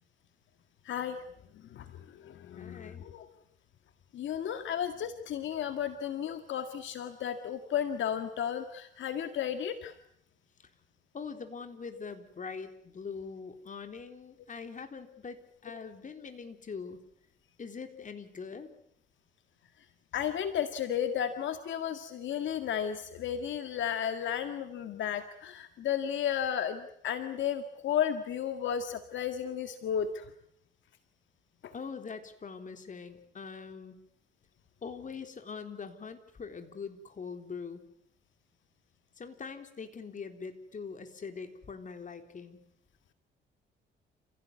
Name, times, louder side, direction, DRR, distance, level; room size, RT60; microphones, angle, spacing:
voice 1, 0.9-1.2 1.7-1.9 2.2-3.3 4.1-9.9 11.9-12.0 20.1-30.3 31.6-31.7, left 9 dB, 70° left, 8 dB, 1.9 m, -33 dB
voice 2, 2.5-3.1 11.1-17.0 17.6-18.7 31.7-33.9 34.8-37.8 39.2-42.6, left 5 dB, 40° left, 7 dB, 3.8 m, -43 dB
29.0 x 16.5 x 9.5 m, 0.74 s
cardioid pair, 90°, 20 cm